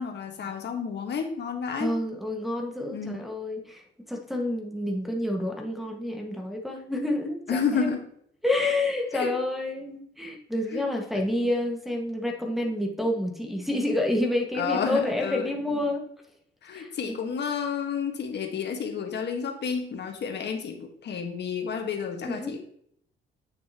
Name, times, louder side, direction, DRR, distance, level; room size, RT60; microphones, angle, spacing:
voice 1, 0.0-1.9 2.9-3.3 7.5-8.1 9.1-9.4 10.7-10.8 14.5-15.8 16.6-22.6, left 6 dB, 60° left, 4 dB, 1.5 m, -31 dB
voice 2, 1.7-3.8 4.1-7.9 8.4-16.0 16.7-17.1 22.2-22.5, left 1 dB, ahead, 0 dB, 1.6 m, -29 dB
8.7 x 6.6 x 2.9 m, 0.66 s
cardioid pair, 90°, 20 cm